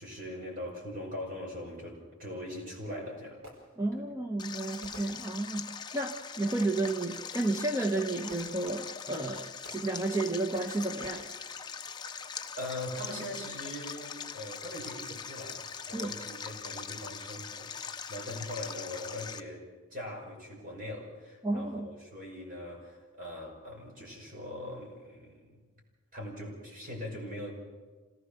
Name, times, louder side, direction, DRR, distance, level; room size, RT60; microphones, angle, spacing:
voice 1, 0.0-3.4 3.9-4.0 12.0-19.6 19.9-25.6 26.1-27.5, left 1 dB, 40° right, -1 dB, 5.7 m, -41 dB
Fireworks, 3.4-4.1 4.8-5.7 6.6-7.3 8.3-9.2 9.7-10.1 10.5-11.1, equal, 70° right, 4.6 m, -52 dB
voice 2, 3.8-11.3 15.9-16.1 21.4-21.9, right 2 dB, 15° right, 3 dB, 1.0 m, -32 dB
Stream, 4.4-19.4, left 6 dB, 20° left, 0.7 m, -42 dB
27.0 x 17.5 x 6.7 m, 1.4 s
head